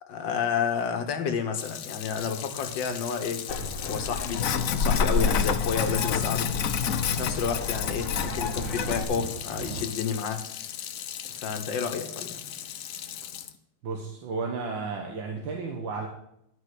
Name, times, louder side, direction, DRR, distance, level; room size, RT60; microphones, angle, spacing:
voice 1, 0.0-3.5 3.8-6.5 7.1-10.4 11.3-12.4, left 6 dB, 80° left, 6 dB, 1.9 m, -30 dB
Sink (filling or washing), 1.5-13.5, left 8 dB, 65° left, 0.9 m, -32 dB
sound 1, 2.1-9.9, right 5 dB, 45° right, 5.8 m, -42 dB
sound 2, 3.5-9.0, left 3 dB, 45° left, 1.6 m, -31 dB
voice 2, 13.8-16.1, right 4 dB, 80° right, 1 dB, 2.0 m, -33 dB
11.0 x 5.5 x 8.0 m, 0.76 s
omnidirectional pair, 2.0 m